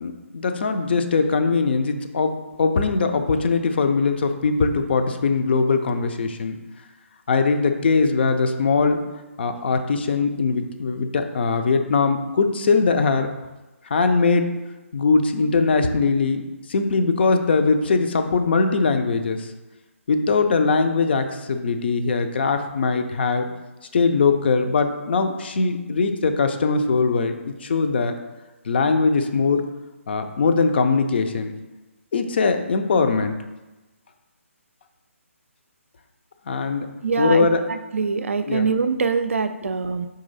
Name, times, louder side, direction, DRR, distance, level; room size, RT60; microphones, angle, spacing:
voice 1, 0.0-6.6 7.3-9.0 9.4-13.3 13.9-14.6 14.9-16.4 16.7-19.5 20.1-23.5 23.9-28.2 28.6-29.6 30.1-31.5 32.1-33.4 36.5-36.9 37.2-37.7 38.5-38.7 39.6-39.7, left 4 dB, 45° left, 7 dB, 0.4 m, -21 dB
voice 2, 37.0-40.1, right 5 dB, 65° right, 9 dB, 0.4 m, -24 dB
3.8 x 3.0 x 4.0 m, 1.1 s
figure-of-eight pair, 145°, 8 cm